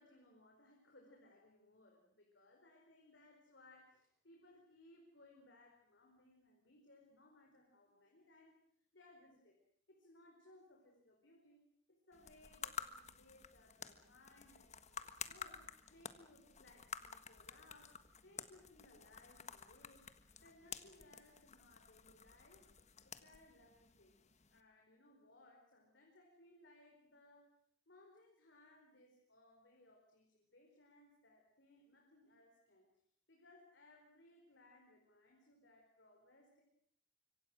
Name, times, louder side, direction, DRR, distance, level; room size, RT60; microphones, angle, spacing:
voice 1, 0.0-8.5 8.9-9.6 9.9-11.6 11.9-20.1 20.4-22.7 23.0-24.2 24.5-27.5 27.9-32.9 33.3-36.6, left 2 dB, 70° left, 1 dB, 4.8 m, -65 dB
sound 1, 12.1-24.6, left 7 dB, 40° left, 1.5 m, -52 dB
26.0 x 24.5 x 6.3 m, 0.64 s
head